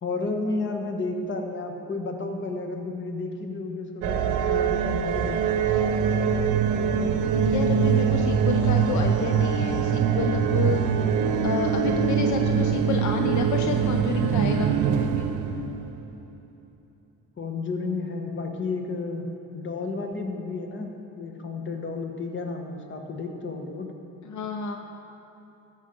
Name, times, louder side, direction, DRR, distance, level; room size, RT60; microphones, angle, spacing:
voice 1, 0.0-5.4 5.7-5.8 17.4-23.9, left 3 dB, 40° left, 4 dB, 1.2 m, -32 dB
sound 1, 4.0-16.0, right 7 dB, 85° right, 0.6 m, -23 dB
voice 2, 7.4-10.8 11.4-15.4 24.2-24.8, left 6 dB, 70° left, 4 dB, 0.6 m, -30 dB
13.5 x 5.6 x 5.1 m, 2.8 s
cardioid pair, 90°, 30 cm